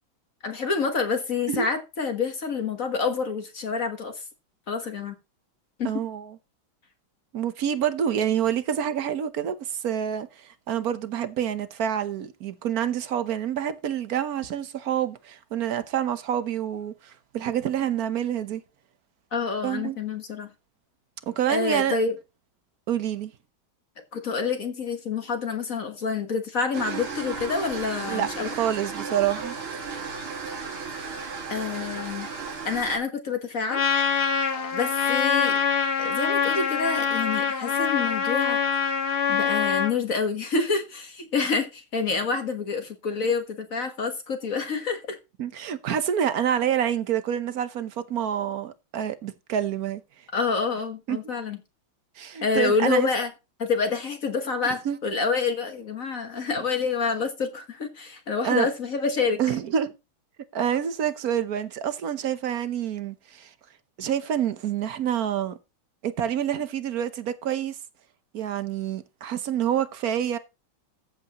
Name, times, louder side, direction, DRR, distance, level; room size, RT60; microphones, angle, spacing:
voice 1, 0.4-4.2 4.7-5.1 5.8-5.9 19.3-20.5 21.5-22.1 24.1-28.5 31.5-32.3 32.6-33.8 34.7-35.6 36.0-38.6 39.3-45.2 50.3-51.6 52.4-53.3 53.6-59.4, left 5 dB, 45° left, 1.6 m, -27 dB
voice 2, 5.8-6.4 7.3-18.6 19.6-20.0 21.3-22.0 22.9-23.3 28.1-29.6 45.4-50.0 51.1-51.2 52.2-53.1 54.8-55.0 58.4-58.7 59.4-59.9 60.5-63.5 64.0-65.6 66.0-67.8 68.3-70.4, right 9 dB, 55° right, 1.2 m, -27 dB
sound 1, 26.7-33.0, right 5 dB, 85° right, 3.1 m, -34 dB
Trumpet, 33.7-39.9, left 6 dB, 85° left, 2.5 m, -24 dB
14.5 x 8.1 x 3.0 m
omnidirectional pair, 2.3 m